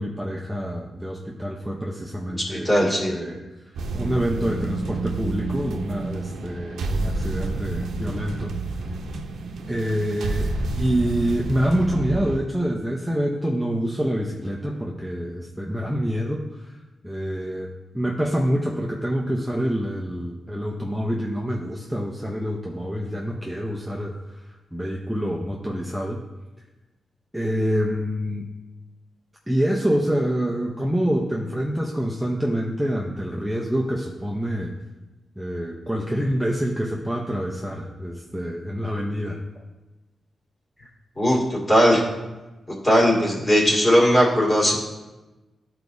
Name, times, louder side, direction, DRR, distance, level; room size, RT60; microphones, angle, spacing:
voice 1, 0.0-3.4 3.9-8.5 9.7-10.5 10.8-16.7 17.0-24.4 24.7-26.2 27.3-28.5 29.5-34.7 35.4-39.4, equal, ahead, -2 dB, 0.7 m, -26 dB
voice 2, 2.3-3.1 41.2-42.0 42.8-44.8, equal, 25° left, -4 dB, 2.2 m, -19 dB
sound 1, 3.7-12.4, right 3 dB, 90° right, 0.6 m, -29 dB
12.5 x 4.7 x 2.7 m, 1.1 s
cardioid pair, 105°, 0 cm